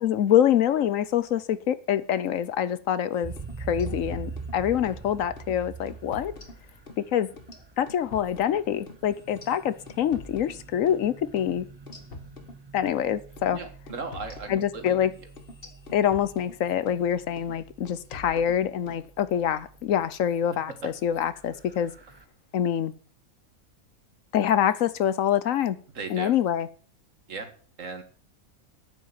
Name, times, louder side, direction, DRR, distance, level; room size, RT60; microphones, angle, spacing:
voice 1, 0.0-3.3 3.7-6.3 7.0-7.3 7.8-11.7 12.7-13.6 14.5-15.1 15.9-21.9 22.5-22.9 24.3-25.8 26.1-26.7, left 9 dB, 70° left, 1.1 m, -25 dB
sound 1, 3.2-20.2 20.7-22.2, right 4 dB, 25° right, 0.7 m, -44 dB
sound 2, 3.3-5.0 5.4-5.6 5.9-7.0 7.4-11.1 11.4-11.5 11.9-13.0 13.4-13.6 13.9-17.0 17.4-17.6 17.9-19.0, left 3 dB, 40° left, 1.7 m, -46 dB
voice 2, 13.5-15.1 20.7-20.8 26.0-26.3 27.3-27.5 27.8-28.0, right 4 dB, 60° right, 2.1 m, -37 dB
9.0 x 7.7 x 8.7 m
omnidirectional pair, 1.5 m